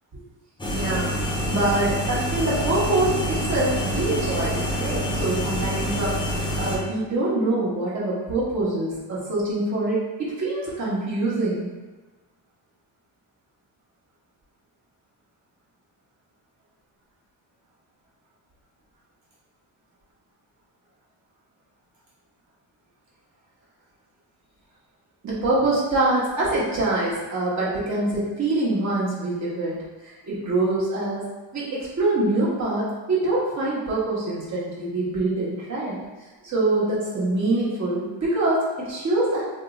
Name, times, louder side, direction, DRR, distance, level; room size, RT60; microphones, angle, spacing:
sound 1, 0.6-6.8, equal, 10° left, 0.4 m, -27 dB
voice 1, 0.7-1.2 1.5-11.7 25.2-29.8 30.0-31.2 31.5-35.9 36.4-39.4, right 2 dB, 40° right, -7 dB, 1.1 m, -25 dB
2.8 x 2.1 x 3.6 m, 1.3 s
cardioid pair, 145°, 43 cm